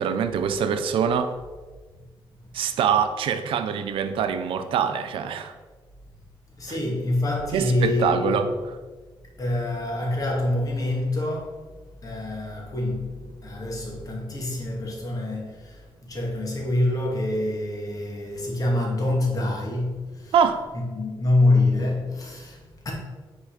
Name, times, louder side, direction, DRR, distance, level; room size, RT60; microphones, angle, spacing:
voice 1, 0.0-1.3 2.5-5.5 6.7-6.8 7.5-8.5 20.3-20.6, right 7 dB, 90° right, 0.7 m, -24 dB
voice 2, 6.6-8.3 9.4-11.6 12.0-20.3 20.7-22.9, left 2 dB, 40° left, 2.6 m, -26 dB
9.0 x 4.7 x 5.0 m
cardioid pair, 95°, 9 cm